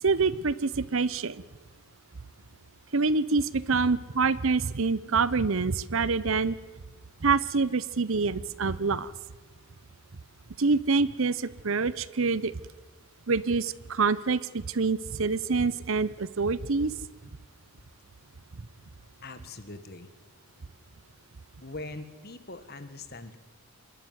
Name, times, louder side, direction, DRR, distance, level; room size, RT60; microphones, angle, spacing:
voice 1, 0.0-1.4 2.9-6.6 7.2-9.1 10.6-12.5 13.3-16.9, right 4 dB, 65° right, 18 dB, 0.8 m, -26 dB
voice 2, 19.2-20.1 21.6-23.4, left 2 dB, 45° left, 11 dB, 1.6 m, -42 dB
27.0 x 12.0 x 9.6 m, 1.2 s
head